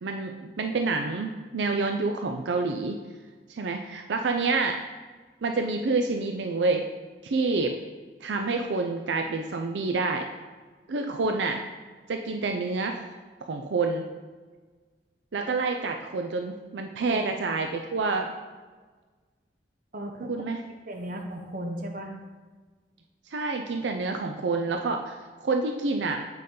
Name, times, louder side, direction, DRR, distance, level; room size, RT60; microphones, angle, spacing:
voice 1, 0.0-3.0 3.5-4.8 5.4-6.8 7.2-7.7 8.2-10.3 10.9-11.6 12.1-13.1 13.4-14.0 15.3-18.3 20.3-20.6 23.3-26.2, right 3 dB, 85° right, 4 dB, 0.5 m, -28 dB
voice 2, 17.0-17.4 19.9-20.3 20.9-22.2, right 1 dB, 50° right, 3 dB, 1.0 m, -36 dB
7.7 x 5.3 x 3.8 m, 1.4 s
head